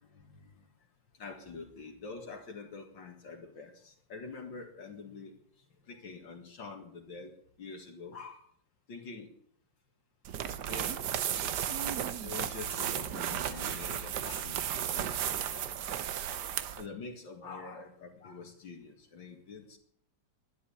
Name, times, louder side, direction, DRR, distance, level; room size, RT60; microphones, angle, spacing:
voice 1, 0.1-0.6 1.2-5.3 5.9-8.4 8.9-9.3 10.7-10.9 12.2-16.0 16.2-16.4 16.7-19.8, left 4 dB, 75° left, 1 dB, 2.7 m, -46 dB
sound 1, 10.2-16.9, right 9 dB, 65° right, 1.4 m, -34 dB
12.5 x 10.5 x 8.6 m, 0.64 s
omnidirectional pair, 2.0 m